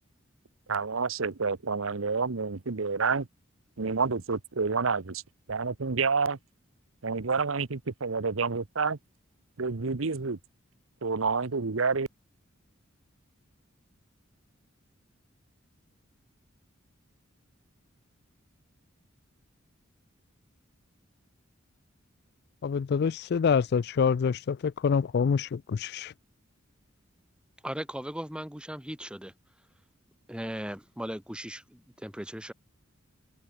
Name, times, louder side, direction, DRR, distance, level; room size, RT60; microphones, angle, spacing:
voice 1, 0.7-3.3 3.8-5.2 5.5-6.4 7.0-9.0 9.6-10.4 11.0-12.1, right 4 dB, 75° right, 1.0 m, -28 dB
voice 2, 22.6-26.1, left 6 dB, 55° left, 0.4 m, -26 dB
voice 3, 27.6-29.3 30.3-32.5, equal, 5° right, 2.6 m, -37 dB
head